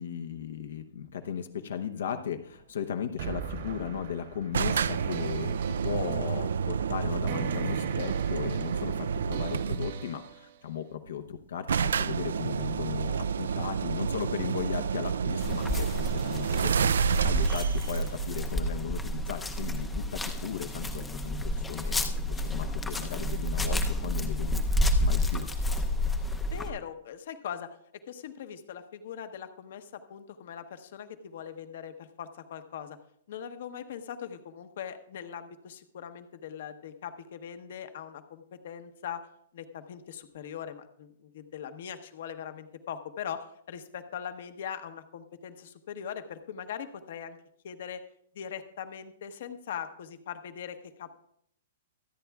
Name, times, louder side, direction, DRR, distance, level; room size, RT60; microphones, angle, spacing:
voice 1, 0.0-25.5, left 8 dB, 70° left, 7 dB, 0.9 m, -37 dB
sound 1, 3.2-10.6, right 8 dB, 55° right, 1.5 m, -40 dB
sound 2, 4.5-10.1 11.1-11.2 11.3-11.4 11.7-19.2, right 6 dB, 85° right, 0.3 m, -29 dB
sound 3, 15.4-26.7, left 1 dB, 5° left, 0.6 m, -30 dB
voice 2, 26.4-27.7 28.1-33.0 33.3-39.2 39.5-47.4 47.6-48.0 48.3-51.1, left 8 dB, 50° left, 9 dB, 1.0 m, -41 dB
24.5 x 9.1 x 2.4 m, 0.69 s
hypercardioid pair, 175°, 0 cm